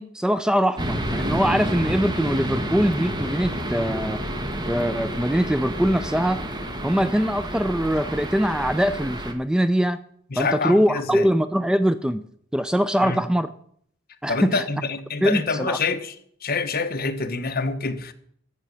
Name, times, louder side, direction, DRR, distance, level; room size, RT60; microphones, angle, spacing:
voice 1, 0.0-4.2 4.7-6.4 6.8-10.0 10.4-12.2 12.5-13.5 14.2-14.6 15.2-15.8, equal, 5° right, 0.4 m, -22 dB
sound 1, 0.8-9.3, equal, 20° right, 1.5 m, -29 dB
voice 2, 10.3-11.3 13.0-13.2 14.3-16.1 16.4-18.1, left 4 dB, 50° left, 1.2 m, -26 dB
13.5 x 7.5 x 8.3 m
head